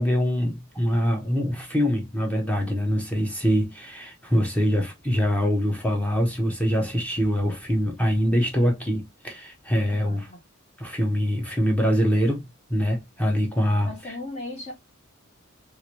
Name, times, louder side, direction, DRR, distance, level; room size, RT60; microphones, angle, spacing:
voice 1, 0.0-10.3 10.8-12.4 12.7-13.9, equal, 5° left, 0.7 m, -24 dB
voice 2, 9.9-10.4 13.8-14.7, left 2 dB, 30° left, 0.9 m, -37 dB
2.9 x 2.5 x 2.9 m
head